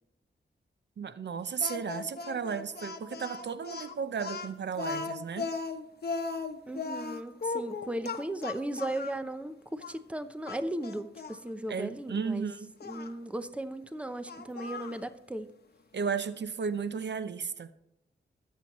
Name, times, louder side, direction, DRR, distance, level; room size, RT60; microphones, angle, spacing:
voice 1, 1.0-5.5 11.7-12.7 15.9-17.7, right 6 dB, 70° right, 12 dB, 0.7 m, -34 dB
Speech, 1.6-9.2 9.8-9.9 10.4-11.4 12.8-13.1 14.3-15.0, left 4 dB, 60° left, 1.0 m, -37 dB
voice 2, 6.7-12.5 12.8-15.5, right 1 dB, 5° right, 10 dB, 0.7 m, -36 dB
21.0 x 7.6 x 3.1 m, 0.88 s
wide cardioid pair, 130°, 19 cm